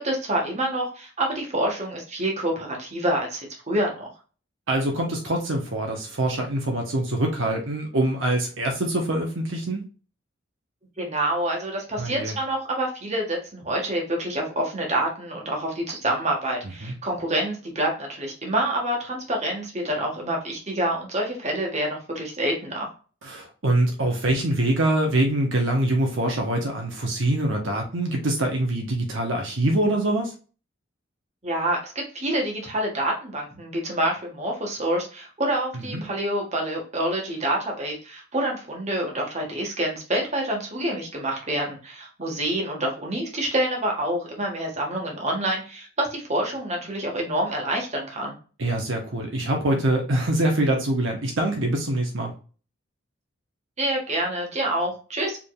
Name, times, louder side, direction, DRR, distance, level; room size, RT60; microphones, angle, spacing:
voice 1, 0.0-4.1 11.0-22.9 31.4-48.3 53.8-55.4, right 1 dB, 35° right, 0 dB, 1.4 m, -27 dB
voice 2, 4.7-9.8 12.0-12.3 16.6-16.9 23.2-30.3 35.7-36.0 48.6-52.3, right 1 dB, 75° right, 2 dB, 1.0 m, -24 dB
4.9 x 3.5 x 2.3 m, 0.37 s
head